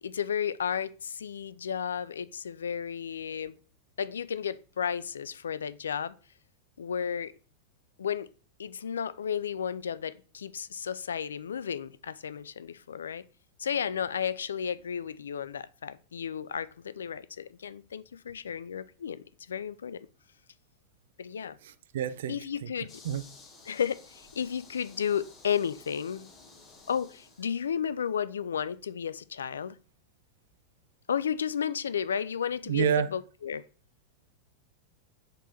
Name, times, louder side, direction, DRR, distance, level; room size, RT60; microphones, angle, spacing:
voice 1, 0.0-3.6 4.0-6.1 6.8-7.3 8.0-8.3 8.6-13.2 13.6-20.1 21.2-21.6 22.3-23.0 23.7-26.3 26.9-29.8 31.1-33.6, left 8 dB, 70° left, 0.3 m, -33 dB
voice 2, 21.6-22.7 23.0-23.3 32.7-33.1, right 8 dB, 60° right, 0.5 m, -29 dB
sound 1, 22.9-27.7, left 3 dB, 25° left, 1.7 m, -54 dB
6.7 x 4.0 x 4.4 m
figure-of-eight pair, 90°, 0 cm